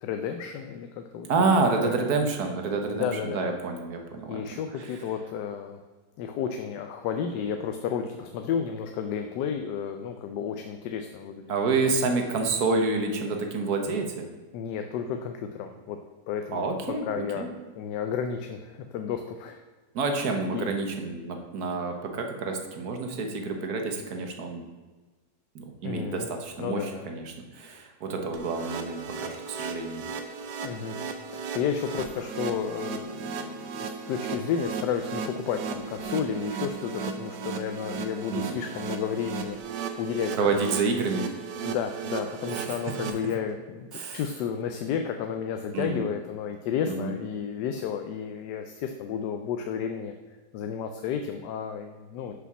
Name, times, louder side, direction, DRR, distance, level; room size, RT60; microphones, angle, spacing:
voice 1, 0.0-1.3 1.8-2.0 2.9-3.4 4.3-5.8 6.2-11.4 14.5-16.0 16.3-16.7 17.1-17.5 17.7-19.6 20.5-20.7 25.8-26.3 26.6-27.1 30.6-31.0 31.3-39.6 40.0-40.7 41.6-50.1 50.5-52.3, left 7 dB, 80° left, 6 dB, 1.2 m, -32 dB
voice 2, 1.3-4.9 11.5-14.3 16.5-17.1 17.4-17.5 19.9-24.6 25.5-30.0 38.3-38.6 40.3-41.3 42.5-42.8 43.9-44.2 45.7-46.1 46.9-47.2, right 3 dB, 65° right, 4 dB, 1.4 m, -28 dB
sound 1, 28.3-43.1, right 6 dB, 85° right, 1.4 m, -36 dB
5.9 x 5.8 x 5.9 m, 1.3 s
omnidirectional pair, 1.8 m